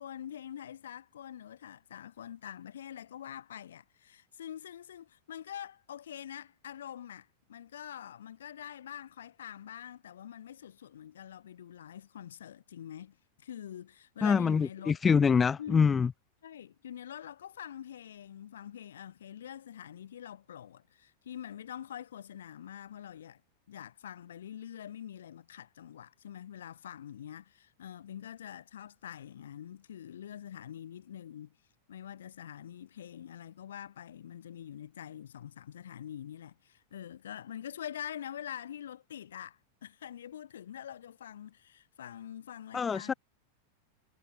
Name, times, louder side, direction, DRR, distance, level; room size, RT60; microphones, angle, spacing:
voice 1, 0.0-15.0 15.6-16.0 16.4-23.4 23.7-31.6 31.9-43.1, left 10 dB, 65° left, 3.4 m, -45 dB
voice 2, 14.2-16.1 42.7-43.1, left 6 dB, 20° left, 0.5 m, -25 dB
figure-of-eight pair, 90°, 0 cm